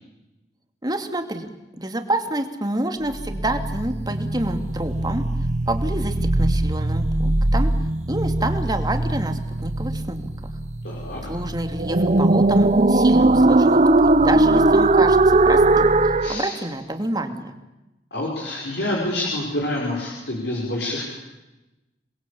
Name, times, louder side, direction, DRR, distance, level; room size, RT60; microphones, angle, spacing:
voice 1, 0.8-1.5 1.8-5.2 5.7-7.7 8.1-10.3 11.3-17.5, right 1 dB, 20° right, 6 dB, 2.5 m, -28 dB
sound 1, 3.1-16.4, right 2 dB, 40° right, 0.9 m, -19 dB
voice 2, 10.8-11.2 16.2-16.5 18.1-21.1, left 1 dB, 65° left, -3 dB, 5.5 m, -27 dB
28.0 x 21.5 x 8.6 m, 1.0 s
head